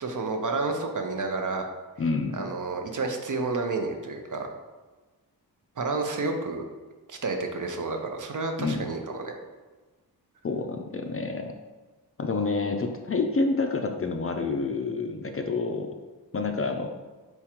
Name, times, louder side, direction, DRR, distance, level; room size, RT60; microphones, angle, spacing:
voice 1, 0.0-1.6 2.3-4.5 5.8-6.6 7.1-9.4, right 3 dB, 55° right, 4 dB, 0.6 m, -30 dB
voice 2, 2.0-2.4 8.6-8.9 10.4-11.5 12.2-15.9 16.3-16.9, left 3 dB, 35° left, 4 dB, 0.4 m, -28 dB
4.5 x 3.6 x 2.9 m, 1.3 s
wide cardioid pair, 70°, 38 cm